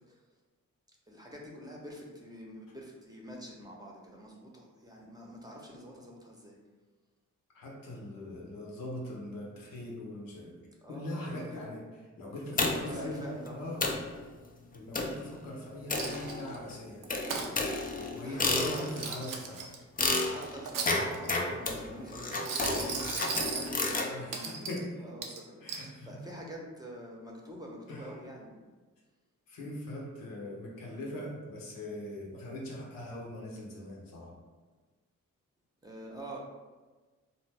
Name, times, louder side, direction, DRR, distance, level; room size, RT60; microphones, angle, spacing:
voice 1, 1.1-6.6 10.8-11.6 12.5-13.6 18.2-19.0 20.2-28.6 35.8-36.4, equal, 10° right, -2 dB, 0.7 m, -46 dB
voice 2, 7.5-10.6 10.9-11.8 12.2-13.9 14.7-17.1 17.9-19.7 24.1-25.1 25.6-26.2 27.9-28.1 29.5-34.3, left 1 dB, 80° left, -2 dB, 0.7 m, -41 dB
sound 1, 12.6-13.0 13.5-13.6 13.8-14.1 14.9-15.3 15.9-16.6 17.1-19.1 20.0-24.1, left 2 dB, 25° left, 0.5 m, -31 dB
Coin (dropping), 16.0-16.6 17.0-17.5 18.6-19.8 20.4-21.4 22.3-23.7 24.3-24.8 25.2-25.9, right 5 dB, 70° right, 0.5 m, -37 dB
2.6 x 2.1 x 3.2 m, 1.3 s
supercardioid pair, 45°, 34 cm